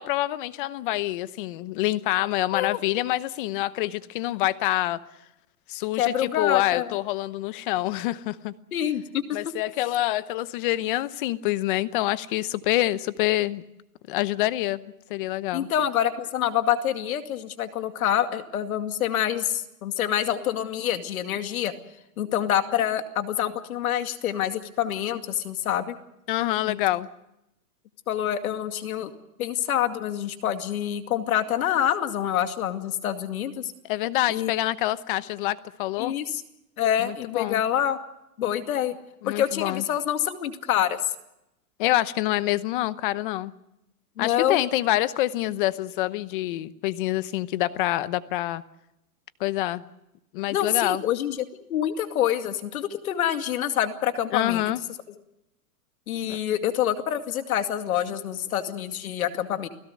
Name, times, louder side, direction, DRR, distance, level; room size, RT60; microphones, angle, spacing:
voice 1, 0.0-5.0 5.7-8.5 9.3-13.6 14.1-15.7 26.3-27.1 33.8-36.1 37.0-37.6 39.2-39.8 41.8-43.5 44.2-48.6 49.4-49.8 50.3-51.0 54.3-54.8 56.3-56.4, left 16 dB, 35° left, 16 dB, 0.9 m, -26 dB
voice 2, 2.5-2.8 6.0-7.0 8.7-9.4 15.5-21.7 22.2-25.9 26.7-26.8 28.1-29.1 29.4-33.7 34.3-34.5 36.0-36.4 36.8-38.0 38.4-39.0 39.3-41.0 44.2-44.6 50.5-51.4 51.7-54.6 56.1-59.7, left 10 dB, 65° left, 8 dB, 2.4 m, -26 dB
30.0 x 17.0 x 6.5 m, 0.87 s
hypercardioid pair, 155°, 45 cm